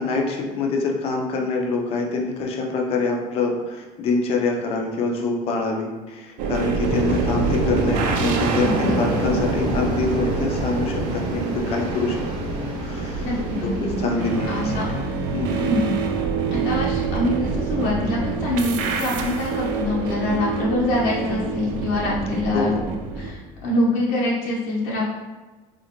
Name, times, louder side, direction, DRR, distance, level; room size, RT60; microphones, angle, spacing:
voice 1, 0.0-12.2 12.8-13.3 13.6-15.0 15.3-15.7 22.5-22.8, left 3 dB, 40° left, 1 dB, 0.5 m, -25 dB
sound 1, 6.4-23.3, right 4 dB, 65° right, 0.4 m, -26 dB
sound 2, 6.8-15.9, equal, 35° right, 0.7 m, -30 dB
voice 2, 8.6-9.2 13.2-13.9 14.5-14.9 15.5-15.8 16.5-22.8 23.2-25.1, left 2 dB, 90° left, -5 dB, 0.8 m, -25 dB
3.7 x 2.5 x 2.9 m, 1.2 s
cardioid pair, 175°, 15 cm